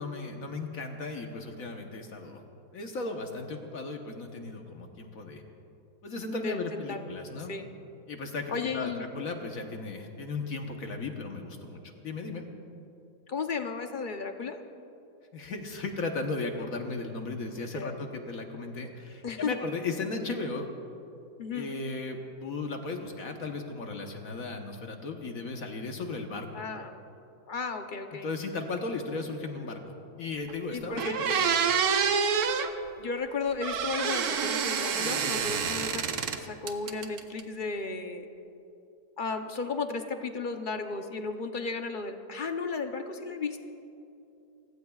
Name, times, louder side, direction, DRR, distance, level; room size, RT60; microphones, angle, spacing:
voice 1, 0.0-2.4 2.7-5.4 6.0-7.5 8.1-12.4 15.3-20.6 21.5-26.6 28.2-29.8 30.2-31.4, left 3 dB, 60° left, 3 dB, 1.5 m, -36 dB
voice 2, 6.3-7.2 7.5-7.7 8.5-9.1 13.3-14.6 17.7-17.9 19.2-19.6 21.4-21.7 26.5-27.0 27.5-28.3 30.7-31.2 33.0-38.3 39.2-43.6, left 4 dB, 45° left, 6 dB, 0.7 m, -34 dB
sound 1, 30.5-30.6 31.0-32.7 33.6-36.4 36.7-37.4, right 6 dB, 70° right, 1.4 m, -27 dB
30.0 x 16.5 x 2.4 m, 2.8 s
omnidirectional pair, 1.7 m